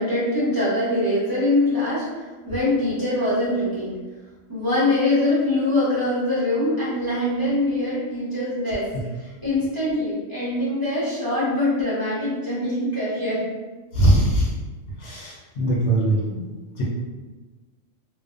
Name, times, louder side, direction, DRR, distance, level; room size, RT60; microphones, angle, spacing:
voice 1, 0.0-4.0 4.5-8.9 9.2-13.4, left 1 dB, 20° right, -11 dB, 0.7 m, -23 dB
voice 2, 13.9-14.5 15.0-16.4 16.8-16.9, right 1 dB, 70° left, -4 dB, 0.9 m, -21 dB
2.5 x 2.1 x 2.4 m, 1.3 s
omnidirectional pair, 1.4 m